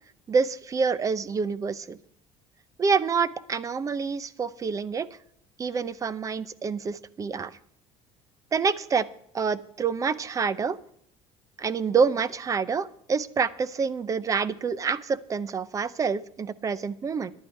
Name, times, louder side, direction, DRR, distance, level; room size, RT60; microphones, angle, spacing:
voice 1, 0.3-2.0 2.8-5.1 5.6-7.6 8.5-9.1 9.3-10.8 11.6-17.3, right 5 dB, 25° right, 18 dB, 0.6 m, -27 dB
14.0 x 11.0 x 4.6 m, 0.69 s
cardioid pair, 135°, 13 cm